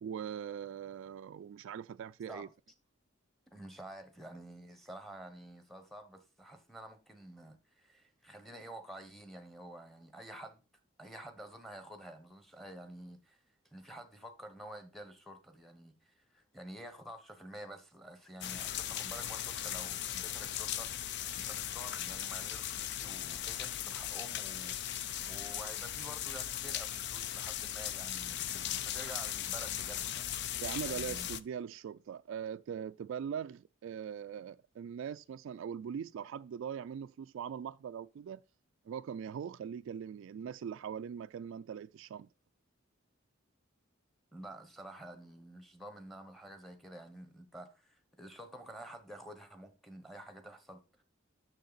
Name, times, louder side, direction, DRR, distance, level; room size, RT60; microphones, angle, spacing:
voice 1, 0.0-2.5 30.6-38.4 38.9-42.3, right 8 dB, 70° right, 0.3 m, -41 dB
voice 2, 3.5-10.6 11.0-13.4 13.7-20.9 21.3-25.0 25.2-30.3 30.8-31.3 44.3-50.8, right 1 dB, ahead, 1.1 m, -49 dB
sound 1, 18.4-31.4, left 11 dB, 60° left, 0.4 m, -38 dB
6.5 x 6.5 x 4.0 m
head